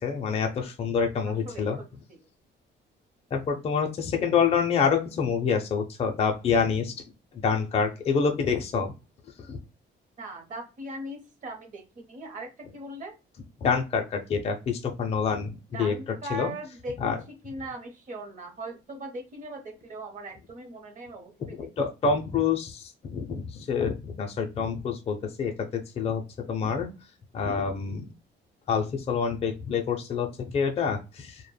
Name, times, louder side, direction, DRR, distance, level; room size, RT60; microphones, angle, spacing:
voice 1, 0.0-1.8 3.3-6.9 7.4-8.9 9.5-9.6 13.6-15.9 16.3-16.5 17.0-17.2 21.8-26.9 27.3-28.0 28.7-31.3, left 6 dB, 35° left, 3 dB, 0.4 m, -27 dB
voice 2, 1.2-2.2 10.2-13.1 15.7-17.2 17.4-21.7, right 1 dB, 40° right, 4 dB, 0.7 m, -40 dB
2.1 x 2.0 x 3.2 m, 0.29 s
cardioid pair, 145°, 19 cm